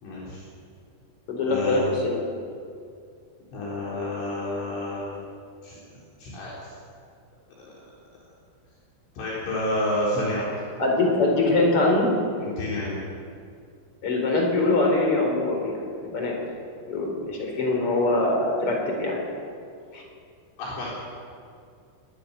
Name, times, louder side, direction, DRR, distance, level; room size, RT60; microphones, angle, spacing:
voice 1, 0.0-0.4 1.4-1.8 3.5-5.2 5.6-5.7 6.2-6.5 9.2-10.5 12.4-13.0 20.6-20.9, left 1 dB, 70° left, -6 dB, 6.4 m, -29 dB
voice 2, 1.3-2.2 10.8-12.1 14.0-16.3 16.9-19.2 19.9-20.0, left 2 dB, 30° left, 0 dB, 4.8 m, -23 dB
22.5 x 12.5 x 9.9 m, 2.3 s
omnidirectional pair, 5.8 m